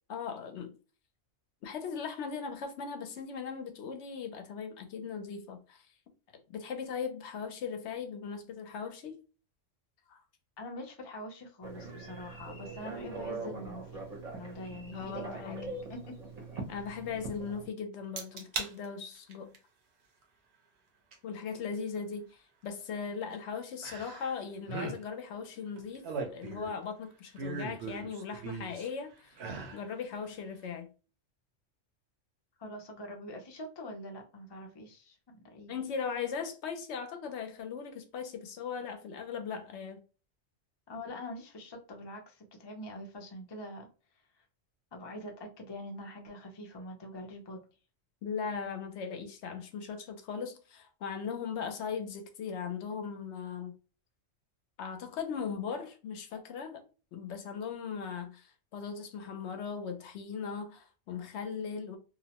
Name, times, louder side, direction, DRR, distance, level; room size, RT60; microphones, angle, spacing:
voice 1, 0.1-0.7 1.6-5.8 6.5-9.2 10.1-10.2 14.9-15.8 16.7-19.5 21.2-26.0 26.3-29.3 29.7-30.9 35.7-40.0 48.2-53.7 54.8-56.8 57.1-62.0, left 6 dB, 70° left, 0.8 m, -38 dB
voice 2, 10.6-13.9 14.3-15.6 15.9-16.1 32.6-35.2 35.5-35.7 40.9-43.9 44.9-47.6, left 1 dB, 40° left, 0.3 m, -44 dB
Telephone, 11.6-17.7, right 3 dB, 40° right, 0.7 m, -42 dB
sound 1, 18.2-18.7 19.2-19.6 21.1-21.2 23.8-24.4 24.6-25.0 25.8-26.8 27.4-28.9 29.3-29.8 30.2-30.3, right 4 dB, 65° right, 0.9 m, -38 dB
2.7 x 2.0 x 2.8 m
omnidirectional pair, 1.3 m